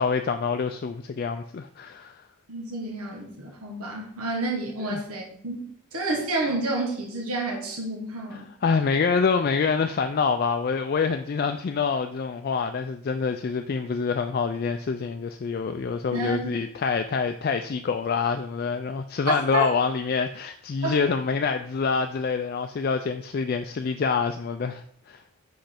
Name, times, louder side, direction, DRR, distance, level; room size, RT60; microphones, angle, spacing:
voice 1, 0.0-2.2 4.9-5.0 8.3-25.2, left 5 dB, 45° left, 7 dB, 0.3 m, -26 dB
voice 2, 2.5-5.6 5.9-8.5 16.1-16.5 19.5-19.6 20.8-21.0, right 2 dB, 90° right, 0 dB, 1.4 m, -30 dB
5.7 x 5.2 x 4.4 m, 0.62 s
head